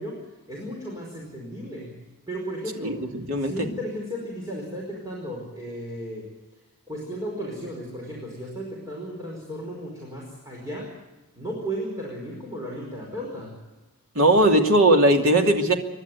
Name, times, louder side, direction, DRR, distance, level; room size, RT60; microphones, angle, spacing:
voice 1, 0.0-6.3 6.9-11.0 11.3-13.5, equal, 15° right, -2 dB, 5.0 m, -35 dB
voice 2, 2.8-3.5 14.1-15.7, right 1 dB, 75° right, 3 dB, 2.7 m, -19 dB
28.5 x 12.0 x 9.3 m, 1.1 s
head